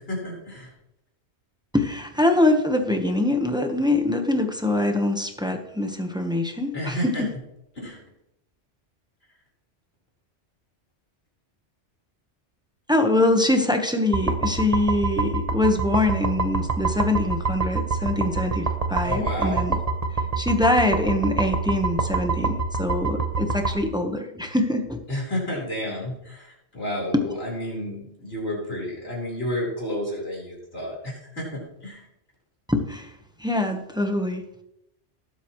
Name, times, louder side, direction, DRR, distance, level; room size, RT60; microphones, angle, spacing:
voice 1, 0.1-0.7 6.7-7.2 7.7-8.0 19.0-19.6 25.1-32.0, left 1 dB, 60° left, -4 dB, 4.7 m, -31 dB
voice 2, 1.7-7.3 12.9-19.8 20.4-25.0 27.1-27.2 32.7-33.1 33.4-34.4, left 1 dB, 5° right, 4 dB, 1.1 m, -23 dB
sound 1, 14.1-23.8, right 4 dB, 35° right, 1.1 m, -26 dB
19.0 x 8.3 x 3.2 m, 0.84 s
omnidirectional pair, 1.2 m